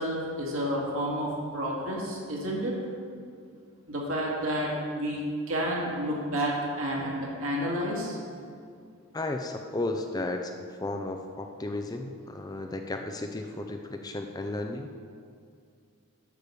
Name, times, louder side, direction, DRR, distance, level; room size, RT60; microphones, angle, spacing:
voice 1, 0.0-2.7 3.9-8.2, equal, 70° right, -3 dB, 2.2 m, -30 dB
voice 2, 9.1-10.5 10.8-14.9, left 2 dB, 15° left, 4 dB, 0.4 m, -34 dB
10.5 x 4.9 x 6.9 m, 2.3 s
head